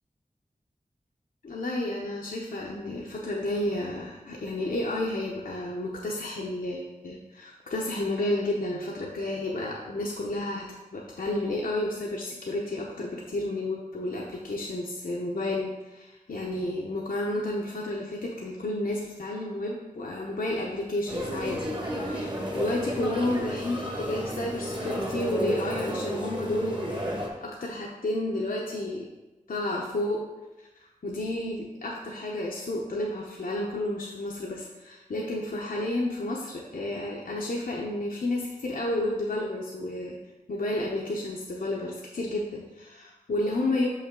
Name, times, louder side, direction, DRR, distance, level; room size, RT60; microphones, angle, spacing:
voice 1, 1.4-10.6 10.9-21.7 22.0-27.0 27.4-29.0 29.5-30.2 31.0-40.2 40.5-43.9, left 1 dB, 75° left, -3 dB, 0.8 m, -31 dB
sound 1, 21.1-27.3, equal, 30° right, 1.3 m, -32 dB
6.4 x 5.5 x 3.7 m, 1.1 s
wide cardioid pair, 75°, 15 cm